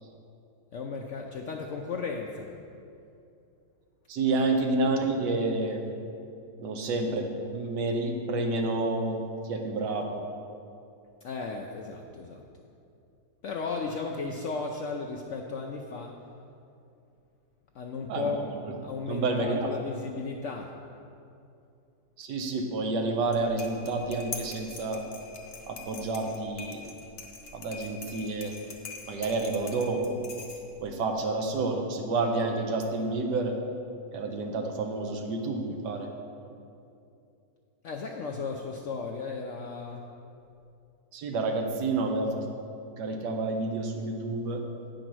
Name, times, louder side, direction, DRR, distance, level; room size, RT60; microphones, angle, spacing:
voice 1, 0.7-2.5 11.2-12.4 13.4-16.1 17.7-18.5 18.8-20.7 37.8-40.0, left 4 dB, 85° left, 1 dB, 0.6 m, -35 dB
voice 2, 4.1-5.8 6.6-9.2 9.4-10.2 18.1-18.3 19.1-19.7 22.2-25.0 25.7-26.8 27.5-28.5 29.1-30.2 30.8-33.5 34.1-36.1 41.1-42.4 43.0-44.6, right 3 dB, 75° right, 3 dB, 1.4 m, -29 dB
sound 1, 23.2-30.9, left 4 dB, 50° left, 0.7 m, -44 dB
8.8 x 5.1 x 6.1 m, 2.6 s
omnidirectional pair, 1.9 m